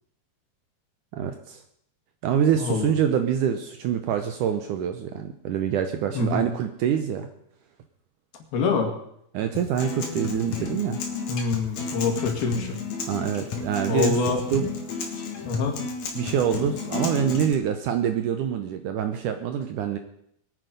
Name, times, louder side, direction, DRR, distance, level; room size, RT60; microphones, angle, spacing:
voice 1, 1.1-1.6 2.2-7.3 9.3-11.0 13.1-14.2 14.5-14.7 16.2-20.0, right 9 dB, 80° right, 8 dB, 1.9 m, -25 dB
voice 2, 2.6-2.9 6.2-6.5 8.5-8.9 11.3-12.8 13.9-14.4 15.4-15.8, left 4 dB, 75° left, 2 dB, 4.0 m, -25 dB
Acoustic guitar, 9.5-17.5, left 5 dB, 55° left, 2.4 m, -32 dB
21.5 x 9.2 x 5.3 m, 0.73 s
omnidirectional pair, 4.5 m